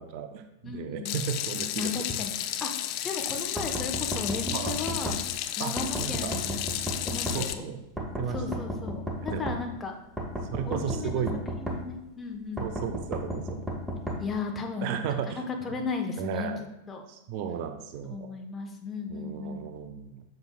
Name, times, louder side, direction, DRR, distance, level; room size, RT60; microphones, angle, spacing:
voice 1, 0.0-2.0 4.5-4.8 5.6-5.7 6.0-6.3 7.3-8.7 9.3-9.5 10.5-11.4 12.6-13.7 14.8-15.4 16.2-16.6 17.1-18.3 19.1-20.2, right 7 dB, 45° right, 8 dB, 0.5 m, -34 dB
voice 2, 0.6-1.2 1.8-5.2 5.6-7.6 8.3-9.9 10.6-11.2 11.6-12.7 14.2-15.0 15.3-16.5 16.9-17.1 18.1-19.7, left 4 dB, 15° left, 3 dB, 1.0 m, -35 dB
Water tap faucet / Sink (filling or washing), 1.1-7.5, left 12 dB, 45° left, 0.4 m, -32 dB
sound 1, 3.6-5.2 5.8-7.4 8.0-9.6 10.2-11.8 12.6-14.2, right 1 dB, 5° right, 1.2 m, -33 dB
7.8 x 6.6 x 2.3 m, 0.92 s
figure-of-eight pair, 90°, 0 cm